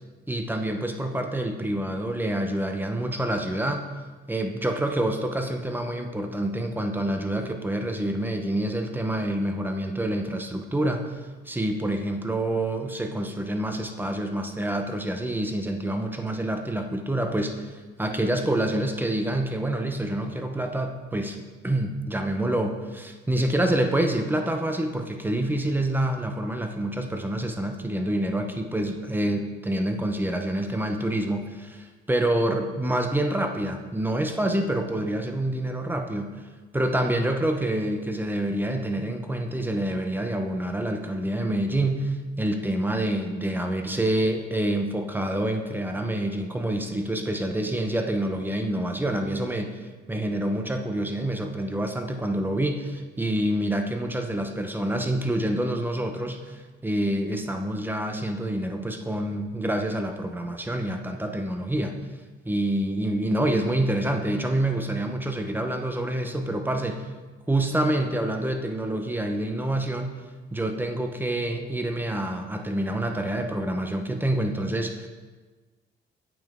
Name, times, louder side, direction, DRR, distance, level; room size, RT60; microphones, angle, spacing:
voice 1, 0.3-3.8 4.3-11.0 11.5-21.4 21.6-36.4 36.7-49.8 50.1-62.0 62.4-67.1 67.5-70.2 70.5-75.1, right 1 dB, 10° right, 5 dB, 0.8 m, -27 dB
8.6 x 5.7 x 3.7 m, 1.3 s
cardioid pair, 90°, 20 cm